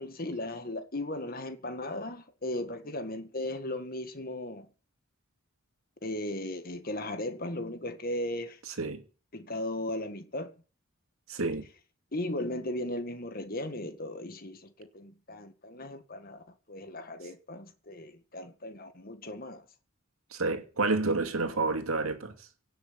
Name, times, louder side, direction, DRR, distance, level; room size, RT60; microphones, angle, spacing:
voice 1, 0.0-4.7 6.0-8.6 9.3-10.5 12.1-19.6, left 1 dB, 45° left, 1.9 m, -37 dB
voice 2, 8.7-9.0 11.3-11.7 20.3-22.5, right 3 dB, 85° right, 2.4 m, -29 dB
17.5 x 6.8 x 9.7 m
head